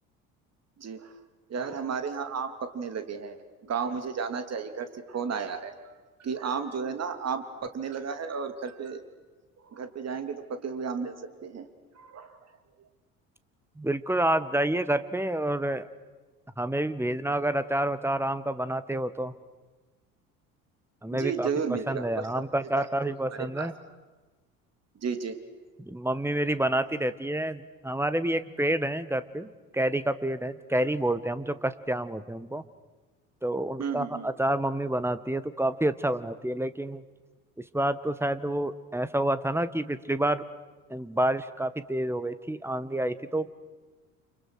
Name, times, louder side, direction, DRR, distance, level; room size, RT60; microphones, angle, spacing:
voice 1, 0.8-1.1 1.5-5.7 6.2-9.0 9.6-10.4 10.6-11.1 11.4-11.7 11.9-12.4 21.1-22.3 22.7-23.7 25.0-25.4 33.8-34.3, right 6 dB, 35° right, 8 dB, 3.1 m, -33 dB
voice 2, 13.8-15.9 16.6-19.3 21.0-21.5 21.9-23.7 25.8-32.6 33.4-37.0 37.6-40.4 40.9-43.5, right 1 dB, 5° right, 14 dB, 1.5 m, -28 dB
29.5 x 29.0 x 6.5 m, 1.3 s
figure-of-eight pair, 60°, 43 cm